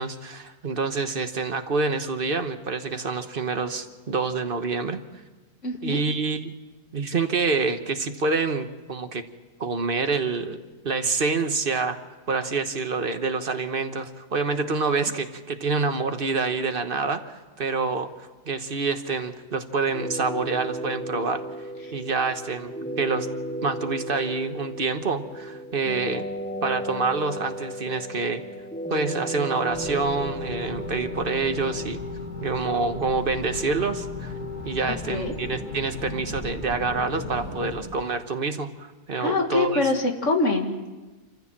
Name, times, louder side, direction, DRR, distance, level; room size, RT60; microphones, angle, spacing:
voice 1, 0.0-5.0 5.8-6.5 6.9-9.2 9.6-12.0 12.3-21.4 21.9-23.3 23.6-26.3 26.6-28.4 28.9-32.0 32.4-34.3 34.6-39.8, right 4 dB, 40° right, 8 dB, 1.2 m, -27 dB
voice 2, 5.6-6.0 34.9-35.3 39.2-40.9, left 3 dB, 50° left, 3 dB, 2.2 m, -25 dB
sound 1, 19.8-31.8, right 1 dB, 15° left, 0.3 m, -35 dB
sound 2, 29.7-37.8, left 3 dB, 85° left, 6.9 m, -35 dB
27.0 x 14.5 x 7.4 m, 1.2 s
omnidirectional pair, 1.7 m